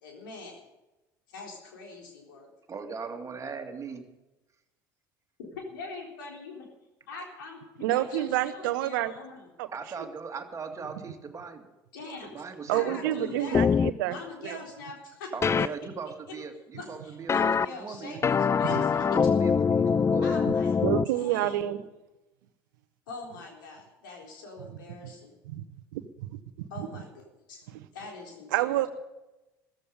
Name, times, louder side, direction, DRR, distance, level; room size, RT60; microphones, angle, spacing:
voice 1, 0.0-0.6 1.3-2.5 5.4-6.7 7.1-9.5 11.9-13.6 14.0-15.7 16.3-16.4 16.7-19.1 20.2-21.8 23.1-25.3 26.7-27.7 27.9-28.8, left 3 dB, 75° left, 1 dB, 3.9 m, -43 dB
voice 2, 2.7-4.0 9.7-11.7 12.2-13.6 15.3-18.2 19.1-20.3, right 5 dB, 30° right, 4 dB, 2.3 m, -39 dB
voice 3, 7.8-9.1 9.6-9.7 10.0-10.1 12.7-14.2 14.4-14.6 18.7-18.8 20.8-21.8 25.5-25.6 25.9-26.4 26.8-26.9 28.5-28.9, right 14 dB, 70° right, 13 dB, 0.9 m, -28 dB
sound 1, 13.5-13.9 15.4-15.7 17.3-17.7 18.2-21.0, left 6 dB, 25° left, 0.5 m, -23 dB
14.5 x 14.5 x 5.3 m, 1.0 s
figure-of-eight pair, 65°, 11 cm